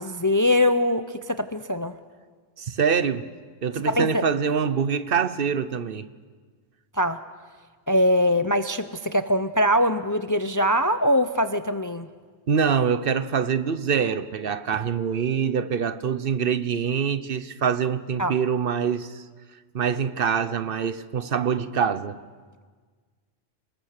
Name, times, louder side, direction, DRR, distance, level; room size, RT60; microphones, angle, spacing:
voice 1, 0.0-2.0 3.9-4.3 6.9-7.2 7.9-12.1 18.2-18.4, left 1 dB, 25° left, 0.5 m, -22 dB
voice 2, 2.6-3.3 3.6-6.1 12.5-19.2 19.7-22.2, right 7 dB, 60° right, 1.0 m, -25 dB
29.0 x 19.5 x 6.6 m
omnidirectional pair, 1.1 m